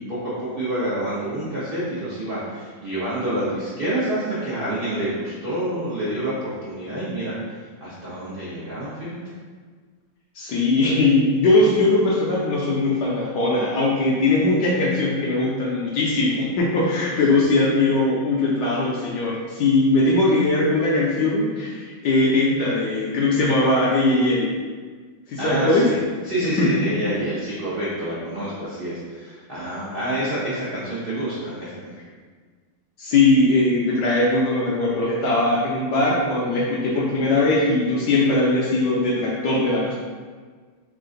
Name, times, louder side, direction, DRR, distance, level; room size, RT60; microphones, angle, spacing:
voice 1, 0.0-7.4 7.8-9.2 17.0-17.4 25.4-26.0 26.2-31.9, right 1 dB, 85° right, -10 dB, 0.5 m, -27 dB
voice 2, 10.3-24.5 25.3-25.9 26.4-26.7 33.0-39.9, left 2 dB, 75° left, -4 dB, 1.0 m, -20 dB
3.7 x 2.4 x 3.7 m, 1.5 s
omnidirectional pair, 2.3 m